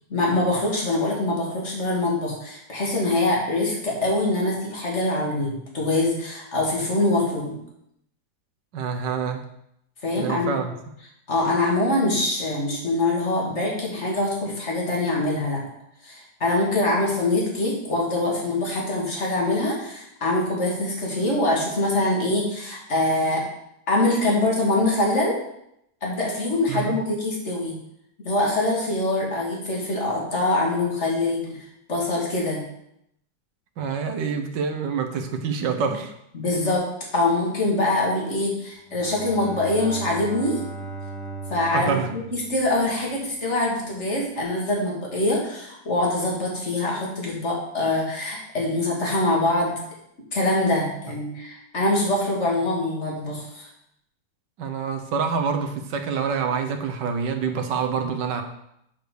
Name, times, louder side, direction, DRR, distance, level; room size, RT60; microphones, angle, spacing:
voice 1, 0.1-7.5 10.0-10.6 11.3-15.6 16.0-23.4 23.9-25.4 26.0-27.8 28.2-31.6 31.9-32.6 36.3-36.8 37.1-40.6 41.5-49.8 50.3-53.7, left 2 dB, 40° left, -3 dB, 2.6 m, -24 dB
voice 2, 8.7-9.5 10.2-10.8 26.7-27.0 33.8-36.1 41.7-42.1 54.6-58.4, right 6 dB, 80° right, 6 dB, 1.7 m, -26 dB
Bowed string instrument, 38.8-43.4, right 3 dB, ahead, 1.9 m, -37 dB
7.8 x 4.7 x 6.8 m, 0.77 s
omnidirectional pair, 1.9 m